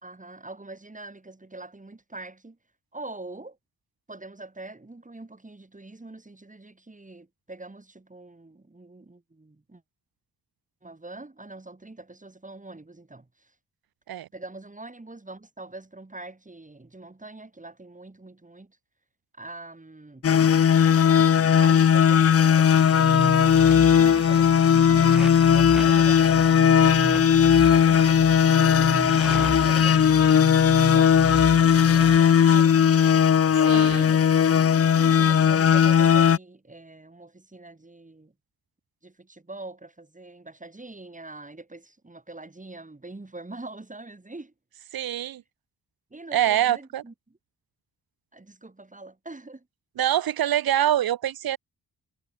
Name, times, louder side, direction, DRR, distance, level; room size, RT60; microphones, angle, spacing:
voice 1, 0.0-2.6 2.9-3.6 4.1-9.8 10.8-13.5 14.3-18.8 19.3-20.3 21.6-29.2 29.6-30.0 30.9-33.0 33.6-34.5 35.1-38.3 39.0-44.5 46.1-47.1 48.3-49.7, right 2 dB, 20° right, 3.6 m, -43 dB
sound 1, 20.2-36.4, left 8 dB, 40° left, 0.6 m, -18 dB
sound 2, 22.7-32.2, right 1 dB, ahead, 0.3 m, -33 dB
voice 2, 33.6-34.0 34.9-35.3 44.9-45.4 46.3-47.0 50.0-51.6, right 11 dB, 70° right, 0.9 m, -25 dB
cardioid pair, 65°, 37 cm